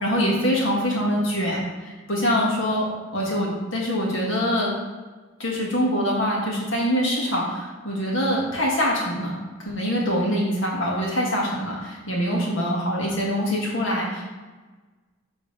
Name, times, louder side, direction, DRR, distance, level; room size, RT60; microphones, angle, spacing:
voice 1, 0.0-2.9 3.1-4.7 5.4-9.3 9.6-14.2, equal, 65° left, -3 dB, 2.0 m, -24 dB
7.6 x 3.5 x 5.4 m, 1.3 s
head